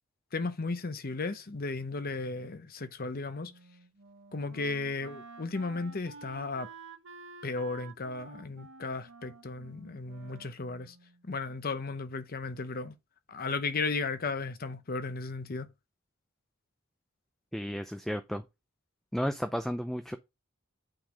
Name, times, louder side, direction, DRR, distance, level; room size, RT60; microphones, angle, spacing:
voice 1, 0.3-3.5 4.3-6.7 7.4-10.9 11.2-12.9 13.3-15.7, left 3 dB, 45° left, 0.8 m, -35 dB
Wind instrument woodwind instrument, 3.4-11.2, right 3 dB, 60° right, 1.1 m, -51 dB
voice 2, 17.5-18.4 19.1-20.2, equal, ahead, 0.4 m, -33 dB
8.8 x 3.9 x 5.1 m
head